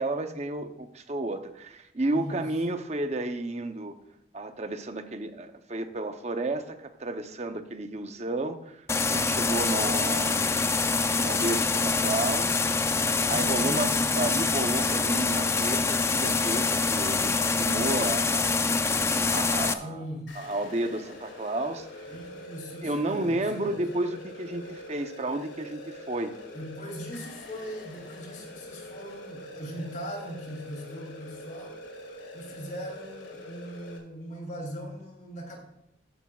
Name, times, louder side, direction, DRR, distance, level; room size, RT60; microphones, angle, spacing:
voice 1, 0.0-3.9 4.3-10.7 11.2-12.6 13.3-18.6 19.2-20.1 20.3-22.1 22.8-26.4, right 2 dB, 35° right, 8 dB, 0.7 m, -32 dB
voice 2, 2.1-2.4 13.2-14.0 19.8-20.3 22.1-23.8 26.5-31.8 32.3-35.6, equal, 45° left, 0 dB, 3.1 m, -39 dB
sound 1, 8.9-19.7, left 4 dB, 15° left, 0.4 m, -25 dB
sound 2, 20.3-34.0, left 1 dB, 80° left, 2.5 m, -44 dB
13.5 x 10.5 x 2.4 m, 0.82 s
head